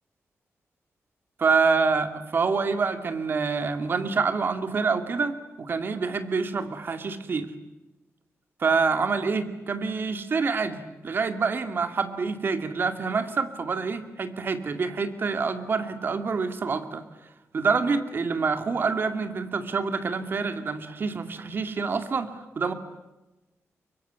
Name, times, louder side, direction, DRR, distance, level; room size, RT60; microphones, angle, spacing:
voice 1, 1.4-7.5 8.6-17.0 17.5-22.3 22.6-22.7, right 4 dB, 45° right, 9 dB, 2.2 m, -26 dB
24.5 x 23.5 x 9.5 m, 1.0 s
wide cardioid pair, 165°, 5 cm